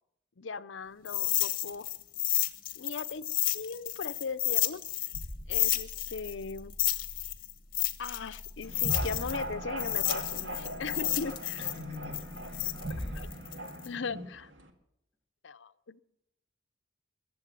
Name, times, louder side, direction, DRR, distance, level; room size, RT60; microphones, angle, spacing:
voice 1, 0.4-1.9 2.8-4.8 5.5-6.8 8.0-11.7 13.1-13.3 13.8-14.5 15.4-16.0, left 4 dB, 65° left, 14 dB, 0.6 m, -39 dB
sound 1, 1.0-5.2 5.5-9.4 9.8-13.9, left 15 dB, 45° left, 1.2 m, -31 dB
sound 2, 5.1-13.3, equal, 50° right, 5.9 m, -42 dB
sound 3, 8.6-14.7, right 1 dB, 70° right, 2.0 m, -41 dB
voice 2, 11.6-13.5, left 3 dB, 30° right, -2 dB, 8.0 m, -47 dB
22.0 x 7.7 x 7.5 m, 0.81 s
head